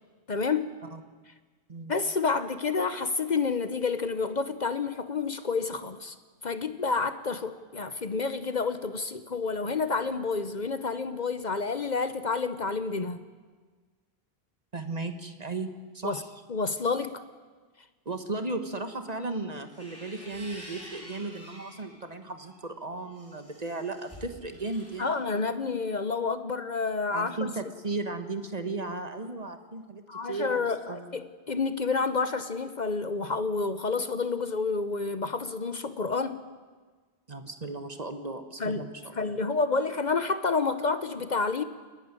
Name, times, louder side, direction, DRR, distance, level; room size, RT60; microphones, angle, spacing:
voice 1, 0.3-0.8 1.9-6.2 6.4-13.2 16.0-16.2 16.5-17.2 25.0-27.5 30.1-36.4 38.6-41.6, left 4 dB, 45° left, 11 dB, 1.0 m, -29 dB
voice 2, 14.7-15.7 15.9-16.3 18.0-25.1 27.1-31.1 37.3-39.4, right 3 dB, 40° right, 7 dB, 1.5 m, -35 dB
sound 1, 19.6-21.9 22.4-25.2, equal, 15° left, 6.7 m, -48 dB
30.0 x 11.5 x 9.8 m, 1.4 s
omnidirectional pair, 1.0 m